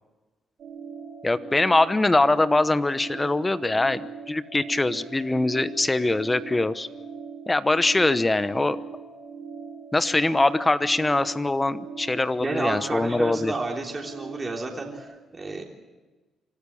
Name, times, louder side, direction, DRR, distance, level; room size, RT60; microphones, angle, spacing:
sound 1, 0.6-15.0, right 6 dB, 65° right, 3.1 m, -41 dB
voice 1, 1.2-4.0 4.3-6.9 7.5-8.8 9.9-13.5, left 2 dB, 15° left, 14 dB, 0.9 m, -23 dB
voice 2, 12.4-15.6, right 3 dB, 25° right, 0 dB, 3.3 m, -31 dB
25.5 x 13.5 x 8.7 m, 1.2 s
cardioid pair, 90°, 0 cm